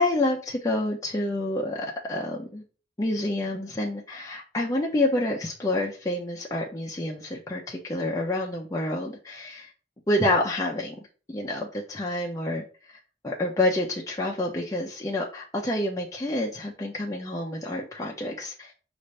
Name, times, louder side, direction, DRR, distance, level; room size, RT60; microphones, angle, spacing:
voice 1, 0.0-2.6 3.0-9.7 10.1-11.0 11.3-13.0 13.2-18.7, left 1 dB, 20° left, -2 dB, 0.5 m, -28 dB
5.3 x 2.5 x 3.2 m, 0.37 s
head